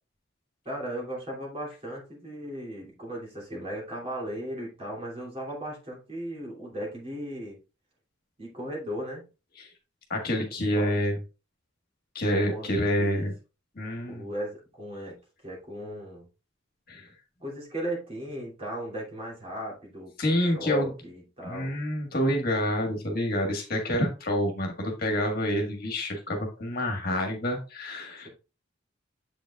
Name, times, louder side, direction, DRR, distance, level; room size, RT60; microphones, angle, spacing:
voice 1, 0.6-7.6 8.4-9.2 10.8-10.9 12.4-12.7 13.0-13.3 14.1-15.2 15.4-16.2 17.4-21.8, right 1 dB, 30° right, -2 dB, 2.7 m, -36 dB
voice 2, 10.1-11.2 12.1-13.3 13.7-14.3 16.9-17.1 20.2-20.9 21.4-28.3, equal, 50° left, 2 dB, 1.6 m, -28 dB
7.8 x 5.3 x 2.4 m, 0.31 s
head